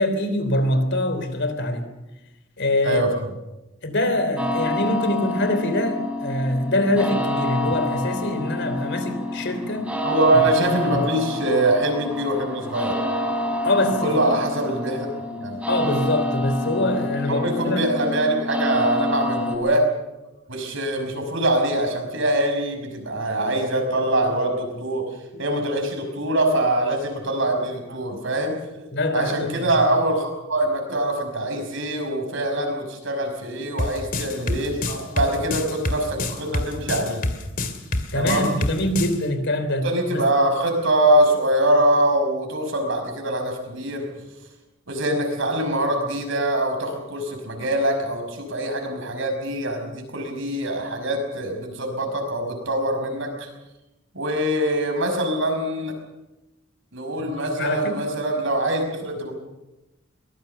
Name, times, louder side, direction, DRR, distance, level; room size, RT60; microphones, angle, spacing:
voice 1, 0.0-1.8 2.6-3.0 3.8-9.9 10.8-11.0 13.6-14.1 15.7-17.8 28.9-29.7 38.1-40.2 57.4-58.0, left 1 dB, 60° left, 9 dB, 3.4 m, -24 dB
sound 1, 4.4-19.6, left 1 dB, 5° right, 3.3 m, -28 dB
voice 2, 10.0-13.0 14.0-15.6 16.5-16.7 17.2-19.9 20.5-28.9 29.1-37.2 38.1-38.5 39.8-44.1 44.9-53.5 54.1-55.9 56.9-59.3, right 1 dB, 65° right, 4 dB, 5.6 m, -23 dB
sound 2, 33.8-39.2, left 2 dB, 45° left, 2.4 m, -26 dB
23.0 x 19.5 x 6.8 m, 1.0 s
head